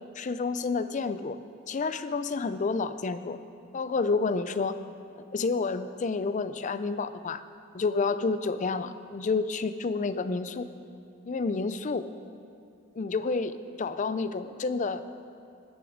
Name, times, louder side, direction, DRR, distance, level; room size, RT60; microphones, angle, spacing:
voice 1, 0.2-1.4 1.7-3.4 3.7-4.8 5.2-7.4 7.7-10.7 11.3-12.1 13.0-15.0, left 4 dB, 35° left, 12 dB, 0.4 m, -29 dB
19.0 x 6.9 x 5.0 m, 2.5 s
head